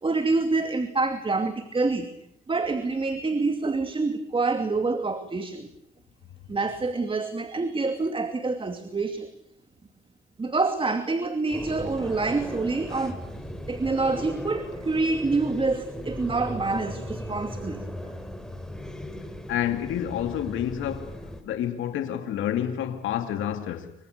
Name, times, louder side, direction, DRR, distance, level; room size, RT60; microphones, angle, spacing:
voice 1, 0.0-2.1 2.5-5.7 6.5-9.3 10.4-13.2 13.7-17.8, right 3 dB, 25° right, 2.6 m, -26 dB
sound 1, 11.5-21.4, equal, 5° left, 4.6 m, -37 dB
voice 2, 19.5-21.2 21.4-23.9, left 10 dB, 85° left, 2.7 m, -29 dB
30.0 x 25.0 x 6.8 m
cardioid pair, 90°, 20 cm